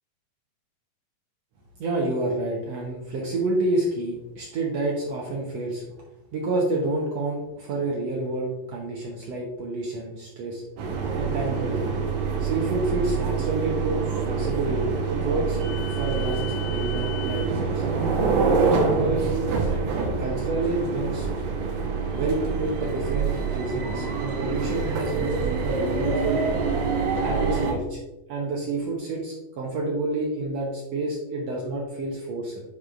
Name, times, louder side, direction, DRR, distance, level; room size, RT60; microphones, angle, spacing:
voice 1, 1.8-5.8 6.3-10.6 11.2-11.9 12.4-15.6 15.9-17.8 18.5-21.3 22.1-25.3 25.6-26.4 27.2-28.0 28.3-32.6, right 2 dB, 70° right, -2 dB, 1.6 m, -29 dB
sound 1, 10.8-27.7, right 5 dB, 90° right, 3.1 m, -26 dB
9.6 x 5.5 x 2.5 m, 1.0 s
omnidirectional pair, 4.1 m